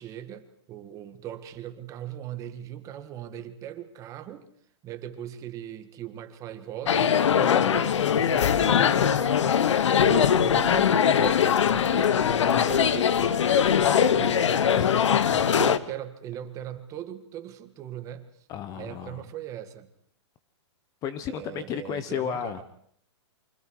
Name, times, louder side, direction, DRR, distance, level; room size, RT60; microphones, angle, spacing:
voice 1, 0.0-4.5 4.8-14.6 15.4-18.3 18.7-19.9 21.3-22.6, right 11 dB, 20° right, 9 dB, 1.7 m, -39 dB
sound 1, 6.9-15.8, left 8 dB, 85° left, 1.2 m, -21 dB
voice 2, 14.8-15.4 18.5-19.2 21.0-22.6, left 9 dB, 25° left, 12 dB, 1.0 m, -33 dB
28.0 x 25.0 x 4.8 m, 0.63 s
hypercardioid pair, 160°, 15 cm